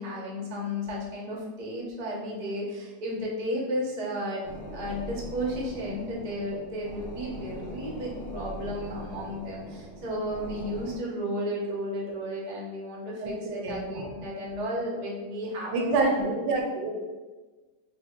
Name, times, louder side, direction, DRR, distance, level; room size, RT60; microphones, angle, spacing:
voice 1, 0.0-16.3, equal, 50° right, -4 dB, 0.4 m, -33 dB
sound 1, 4.4-11.0, equal, 90° left, 1.6 m, -41 dB
voice 2, 13.2-14.1 15.7-16.9, right 3 dB, 75° right, 1 dB, 1.2 m, -28 dB
3.4 x 2.1 x 4.2 m, 1.3 s
omnidirectional pair, 2.0 m